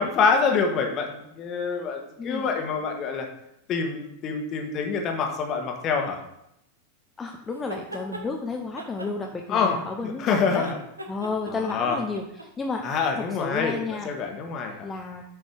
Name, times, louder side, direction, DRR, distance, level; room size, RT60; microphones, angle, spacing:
voice 1, 0.0-3.3 3.7-6.2 9.5-9.8 10.0-10.8 11.5-12.0 12.8-13.8 14.0-14.9, left 5 dB, 30° left, 3 dB, 1.4 m, -26 dB
voice 2, 2.2-2.5 7.2-10.6 11.1-12.2 12.6-12.9 13.4-14.1 14.8-15.2, left 4 dB, 15° left, 2 dB, 0.7 m, -31 dB
sound 1, 7.5-8.3 8.8-10.2 10.5-12.7, right 1 dB, 80° right, 1.1 m, -39 dB
8.2 x 5.2 x 5.1 m, 0.80 s
figure-of-eight pair, 90°, 0 cm